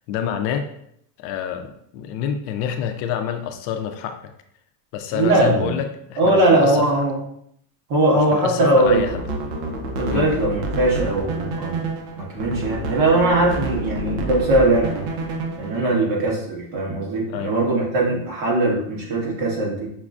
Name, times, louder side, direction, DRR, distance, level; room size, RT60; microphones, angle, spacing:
voice 1, 0.1-0.7 1.2-4.2 4.9-7.0 8.2-9.2 10.1-10.3 15.8-16.0 17.3-17.5, left 8 dB, 60° left, 6 dB, 0.5 m, -28 dB
voice 2, 5.1-5.7 6.2-7.1 7.9-9.2 10.0-11.8 12.1-14.9 15.6-19.9, right 2 dB, 50° right, -3 dB, 1.4 m, -20 dB
sound 1, 8.7-15.8, right 2 dB, 70° right, 0.8 m, -28 dB
6.0 x 2.2 x 2.4 m, 0.71 s
cardioid pair, 145°, 48 cm